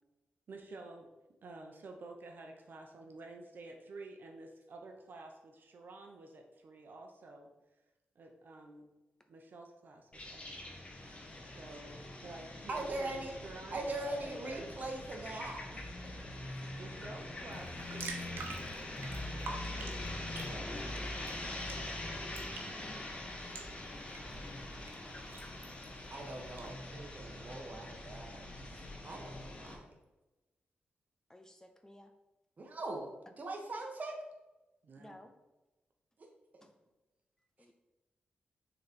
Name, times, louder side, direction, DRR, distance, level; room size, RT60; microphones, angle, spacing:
voice 1, 0.5-1.1 1.4-7.5 8.1-8.9 9.3-10.8 11.4-14.7 16.8-19.9 34.8-35.2, right 2 dB, 60° right, 3 dB, 1.0 m, -51 dB
sound 1, 10.1-29.7, left 1 dB, 30° left, 1.5 m, -43 dB
voice 2, 12.7-13.3 13.7-15.8 20.5-20.9 26.1-28.5 29.0-29.8 32.6-33.1 33.4-34.2, right 2 dB, 45° right, 2 dB, 1.5 m, -41 dB
sound 2, 17.5-26.7, right 4 dB, 85° right, 1.1 m, -50 dB
voice 3, 31.3-32.1 35.0-35.3 36.6-36.7 37.6-37.7, left 1 dB, 15° left, 6 dB, 0.6 m, -56 dB
6.5 x 4.0 x 4.4 m, 1.1 s
cardioid pair, 90°, 4 cm